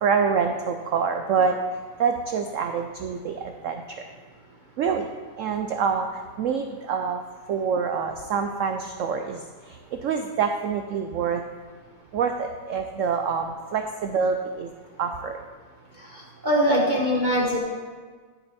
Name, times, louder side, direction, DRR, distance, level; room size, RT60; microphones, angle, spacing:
voice 1, 0.0-1.6 2.0-3.8 4.8-5.1 5.4-6.1 6.4-7.2 7.5-9.4 10.0-11.4 12.1-14.7 15.0-15.4, right 6 dB, 85° right, 6 dB, 0.7 m, -26 dB
voice 2, 16.1-17.6, equal, 35° right, -2 dB, 0.9 m, -22 dB
11.0 x 6.7 x 4.2 m, 1.5 s
omnidirectional pair, 1.9 m